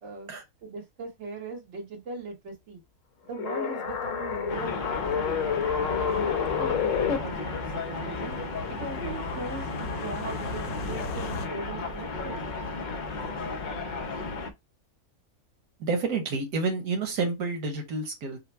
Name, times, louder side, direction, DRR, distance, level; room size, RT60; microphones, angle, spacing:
voice 1, 0.0-0.3 0.6-2.8 3.2-8.3 8.7-12.5, right 3 dB, 50° right, 1.7 m, -40 dB
sound 1, 3.3-7.2, left 7 dB, 65° left, 1.0 m, -28 dB
sound 2, 3.9-11.5, left 2 dB, 85° left, 1.3 m, -42 dB
sound 3, 4.5-14.5, left 3 dB, 45° left, 0.6 m, -34 dB
voice 2, 15.8-18.4, right 4 dB, 85° right, 1.5 m, -29 dB
5.6 x 2.2 x 4.3 m
omnidirectional pair, 1.6 m